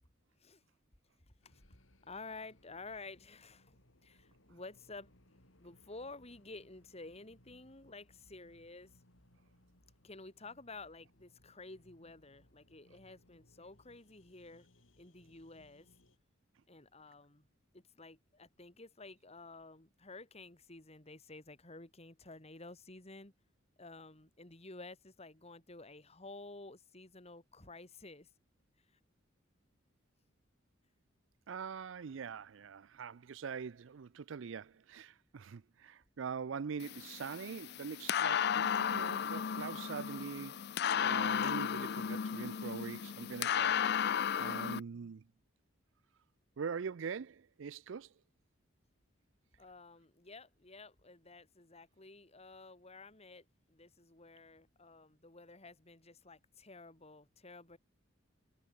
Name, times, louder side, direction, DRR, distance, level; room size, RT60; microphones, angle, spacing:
sound 1, 1.4-16.2, left 1 dB, 80° left, 6.0 m, -68 dB
voice 1, 1.4-3.8 4.0-5.1 5.6-9.0 10.0-14.7 15.0-15.9 16.7-17.5 17.7-23.3 23.8-28.3 49.6-57.8, left 3 dB, 30° left, 3.0 m, -52 dB
voice 2, 31.5-40.6 41.0-44.1 44.4-45.2 46.6-48.1, right 6 dB, 70° right, 0.5 m, -43 dB
sound 2, 36.8-44.8, left 8 dB, 55° left, 0.5 m, -34 dB
head